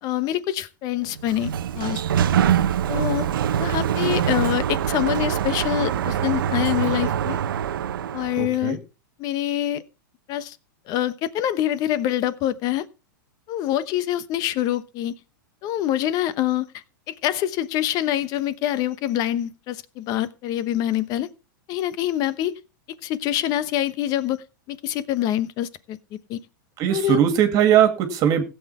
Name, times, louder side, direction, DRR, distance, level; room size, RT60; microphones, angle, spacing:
voice 1, 0.0-2.0 2.9-3.3 3.6-7.4 8.1-8.8 9.2-9.8 10.3-10.6 10.9-12.8 13.5-15.1 15.6-21.3 21.7-22.5 23.0-26.0 26.3-26.4 26.9-27.2, left 12 dB, 35° left, 1.0 m, -25 dB
Sliding door, 1.1-8.5, right 9 dB, 85° right, 0.8 m, -24 dB
voice 2, 8.4-8.8 26.8-28.4, right 10 dB, 30° right, 2.3 m, -19 dB
16.0 x 8.0 x 4.3 m
supercardioid pair, 145°, 11 cm